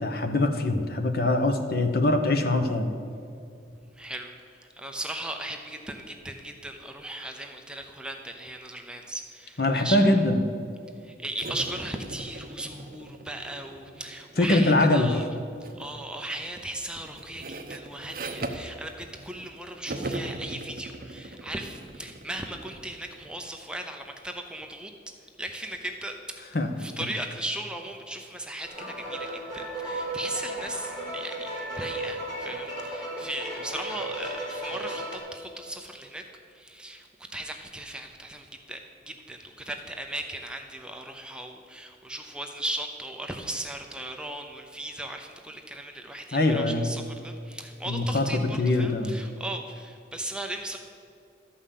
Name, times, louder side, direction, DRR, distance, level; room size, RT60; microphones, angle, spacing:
voice 1, 0.0-2.9 9.6-10.4 14.4-15.2 26.5-26.7 46.3-46.9 47.9-48.2 48.6-49.2, left 2 dB, 55° left, 7 dB, 0.9 m, -23 dB
voice 2, 3.9-10.2 11.0-15.3 15.7-24.9 25.4-26.2 26.8-36.2 36.5-50.8, right 1 dB, 5° right, 3 dB, 0.6 m, -37 dB
sound 1, 11.4-14.7 15.6-15.9 16.3-19.5 19.8-23.4, right 2 dB, 50° right, 0.8 m, -39 dB
sound 2, 28.6-35.2, right 1 dB, 25° left, 3.4 m, -35 dB
12.5 x 5.6 x 8.4 m, 2.5 s
head